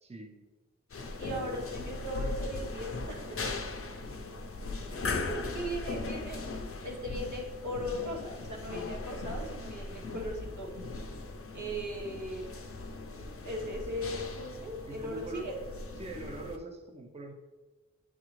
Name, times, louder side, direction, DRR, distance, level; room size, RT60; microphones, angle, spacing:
voice 1, 0.0-0.5 4.0-4.2 4.8-4.9 13.9-14.0 14.9-15.5 16.0-17.3, right 2 dB, 20° right, 4 dB, 0.6 m, -43 dB
sound 1, 0.9-16.6, left 3 dB, 50° left, 0.6 m, -39 dB
voice 2, 1.2-3.4 5.3-6.4 6.8-10.7 11.5-12.5 13.4-15.5, equal, 80° right, -2 dB, 1.3 m, -38 dB
8.6 x 3.7 x 3.1 m, 1.2 s
wide cardioid pair, 70°, 29 cm